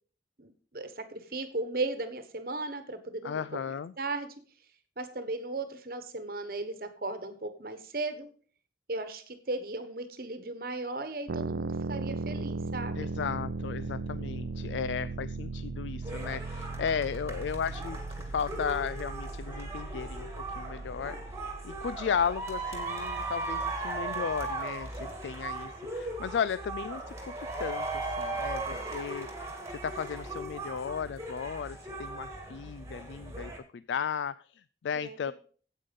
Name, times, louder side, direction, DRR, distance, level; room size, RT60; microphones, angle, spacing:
voice 1, 0.4-3.4 4.0-4.3 5.0-8.3 8.9-13.1 28.7-29.2 34.9-35.2, right 2 dB, 55° right, 10 dB, 1.2 m, -36 dB
voice 2, 3.2-3.9 13.0-18.0 18.3-21.2 21.6-27.3 27.6-35.3, left 7 dB, 90° left, 16 dB, 0.4 m, -35 dB
sound 1, 11.3-22.9, right 3 dB, 85° right, 0.5 m, -37 dB
sound 2, 16.0-33.6, right 2 dB, 15° right, 2.1 m, -38 dB
9.0 x 8.3 x 5.3 m, 0.43 s
head